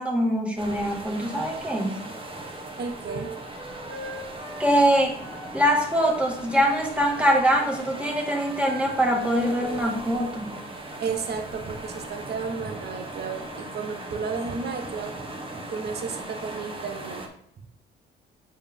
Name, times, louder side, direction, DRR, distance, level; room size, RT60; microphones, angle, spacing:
voice 1, 0.0-2.0 4.6-5.2 5.5-10.5, equal, 5° right, 0 dB, 1.7 m, -23 dB
sound 1, 0.6-17.3, right 1 dB, 25° right, 1.3 m, -39 dB
voice 2, 2.8-3.3 11.0-15.1 15.7-17.2, right 5 dB, 55° right, 6 dB, 1.0 m, -32 dB
Wind instrument woodwind instrument, 3.0-6.2 6.5-9.9, right 2 dB, 70° right, 2.3 m, -42 dB
7.5 x 4.6 x 3.5 m, 0.73 s
cardioid pair, 90°, 20 cm